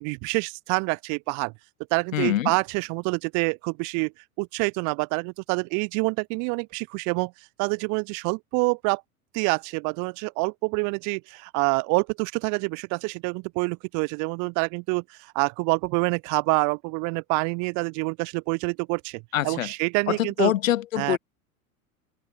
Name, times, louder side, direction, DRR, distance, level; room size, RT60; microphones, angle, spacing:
voice 1, 0.0-1.5 1.9-4.1 4.4-7.3 7.6-9.0 9.3-20.5 21.0-21.2, right 34 dB, 40° right, 1.1 m, -27 dB
voice 2, 2.1-2.5 19.3-19.7 20.1-21.2, left 13 dB, 65° left, 4.2 m, -24 dB
open air
figure-of-eight pair, 85°, 43 cm